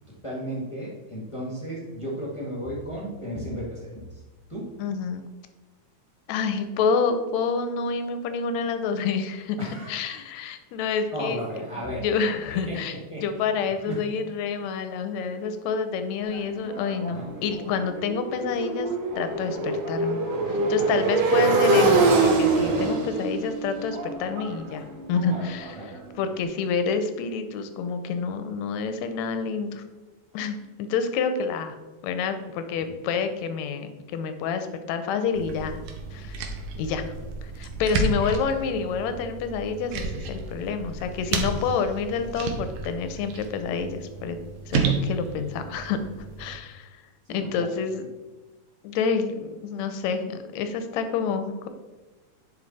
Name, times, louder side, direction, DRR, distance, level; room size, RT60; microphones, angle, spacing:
voice 1, 0.2-4.2 4.5-4.7 9.6-10.2 11.1-13.5 13.8-14.0 17.1-17.3 20.8-21.2 25.3-25.4 25.8-26.0 32.8-33.0 47.2-47.7, equal, 15° left, -5 dB, 1.0 m, -35 dB
voice 2, 4.8-5.2 6.3-9.6 9.9-11.4 12.0-13.0 13.2-18.9 19.2-20.2 20.5-25.8 26.2-29.8 30.3-31.8 32.0-35.8 36.1-36.4 36.8-37.0 37.4-44.4 44.7-46.0 46.4-46.9 47.3-48.1 48.8-51.7, left 5 dB, 75° left, 9 dB, 1.8 m, -28 dB
Motorcycle, 16.3-26.2, right 3 dB, 60° right, 2.3 m, -25 dB
sound 1, 35.3-46.6, right 4 dB, 85° right, 2.4 m, -32 dB
9.6 x 5.3 x 4.1 m, 1.2 s
omnidirectional pair, 3.6 m